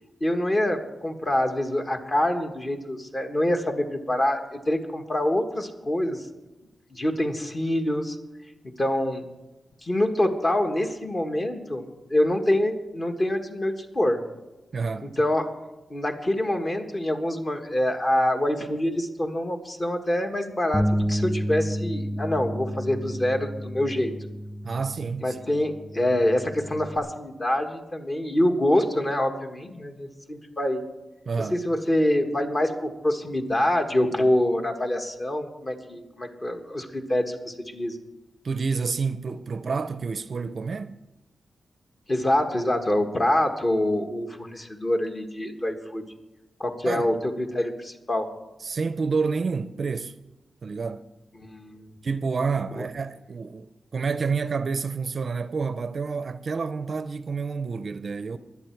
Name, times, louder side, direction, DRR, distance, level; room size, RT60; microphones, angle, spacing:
voice 1, 0.2-6.3 6.9-8.2 8.8-9.3 9.8-11.8 12.1-14.2 15.0-15.5 15.9-24.1 25.2-30.9 31.5-38.0 42.1-46.0 46.6-48.3 51.4-51.9 52.8-52.9, left 1 dB, 30° left, 1.5 m, -25 dB
voice 2, 14.7-15.1 24.6-25.4 31.3-31.6 38.4-40.9 46.8-47.1 48.6-50.1 50.6-51.1 52.0-58.4, right 5 dB, 55° right, 0.5 m, -29 dB
Bass guitar, 20.7-27.0, equal, 10° left, 2.1 m, -30 dB
23.0 x 8.4 x 4.6 m
wide cardioid pair, 120°, 0 cm